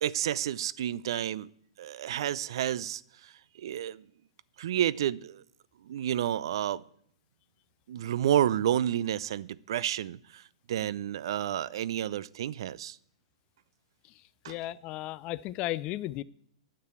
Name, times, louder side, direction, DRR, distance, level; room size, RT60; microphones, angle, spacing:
voice 1, 0.0-1.5 1.8-4.0 4.6-5.4 5.8-6.8 7.9-13.0 14.4-14.5, right 11 dB, 55° right, 0.4 m, -30 dB
voice 2, 14.5-16.2, left 16 dB, 35° left, 0.4 m, -35 dB
9.4 x 6.7 x 8.7 m
figure-of-eight pair, 110°, 3 cm